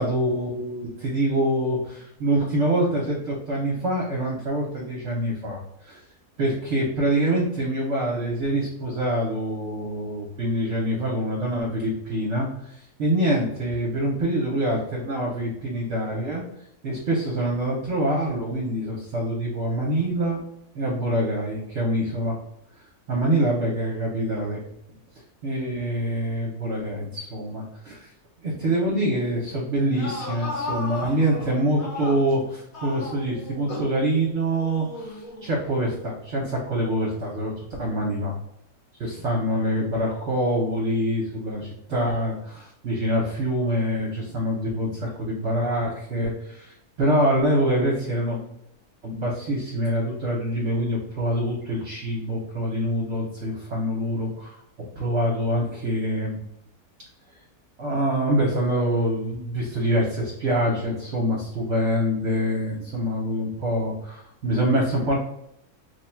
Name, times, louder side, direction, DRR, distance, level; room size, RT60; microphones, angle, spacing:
voice 1, 0.0-6.0 6.4-16.4 16.8-20.4 20.7-22.4 23.1-24.6 25.4-28.1 28.4-38.4 39.0-48.4 49.0-54.6 55.0-56.4 57.8-65.1, right 1 dB, 55° right, -2 dB, 1.0 m, -25 dB
sound 1, 29.8-32.4 32.7-34.0 34.5-35.6, left 2 dB, 65° left, 1.4 m, -35 dB
3.2 x 2.3 x 4.3 m, 0.76 s
omnidirectional pair, 1.7 m